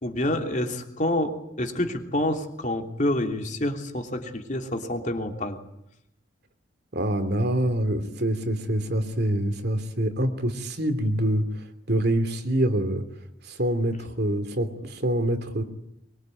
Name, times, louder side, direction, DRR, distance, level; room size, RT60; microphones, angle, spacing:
voice 1, 0.0-5.6, left 1 dB, 40° left, 4 dB, 3.1 m, -28 dB
voice 2, 6.9-13.0 13.4-15.6, right 1 dB, 55° right, 9 dB, 2.9 m, -25 dB
23.5 x 23.5 x 9.2 m, 0.80 s
head